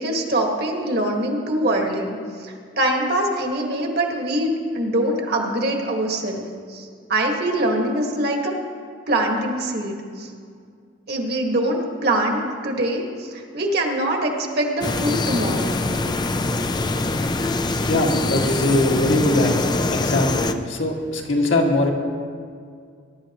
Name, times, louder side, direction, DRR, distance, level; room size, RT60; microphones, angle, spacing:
voice 1, 0.0-2.2 2.5-8.5 9.1-10.3 11.1-15.8, right 1 dB, 55° right, 1 dB, 1.8 m, -23 dB
sound 1, 14.8-20.5, left 2 dB, 20° left, 0.4 m, -24 dB
voice 2, 17.8-21.9, left 1 dB, 80° left, -1 dB, 1.9 m, -21 dB
21.0 x 12.0 x 3.0 m, 2.2 s
head